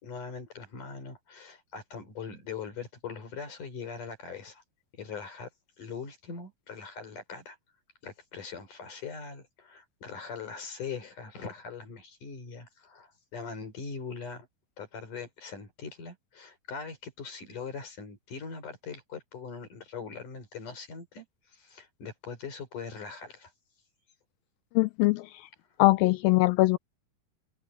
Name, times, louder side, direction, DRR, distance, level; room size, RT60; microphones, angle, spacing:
voice 1, 0.0-4.6 4.9-5.5 5.8-7.6 8.0-14.5 14.8-23.5, left 5 dB, 55° left, 6.3 m, -41 dB
voice 2, 24.7-25.5 25.8-26.8, left 20 dB, 85° left, 2.1 m, -22 dB
open air
omnidirectional pair, 4.5 m